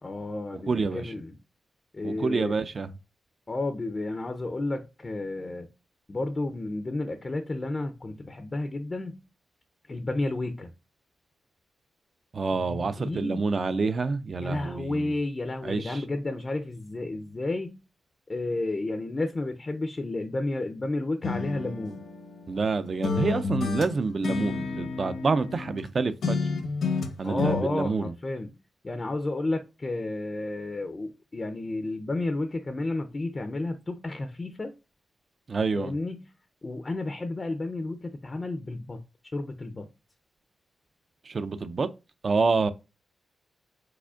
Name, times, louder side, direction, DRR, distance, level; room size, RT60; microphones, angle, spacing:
voice 1, 0.0-1.3 1.9-2.6 3.5-5.7 6.1-9.2 9.9-10.7 12.5-13.4 14.4-17.8 18.3-22.1 27.2-28.6 28.8-34.7 35.7-36.3 36.6-39.0 39.3-39.9, left 2 dB, 25° left, 0.4 m, -32 dB
voice 2, 0.7-1.1 2.0-2.9 12.3-15.1 15.6-16.0 22.5-26.4 27.2-28.1 35.5-35.9 41.3-41.9 42.2-42.7, right 4 dB, 40° right, 0.3 m, -27 dB
sound 1, 21.2-22.7 23.0-25.9 26.2-27.6, left 4 dB, 75° left, 0.8 m, -30 dB
4.8 x 4.3 x 2.3 m
wide cardioid pair, 150°, 0 cm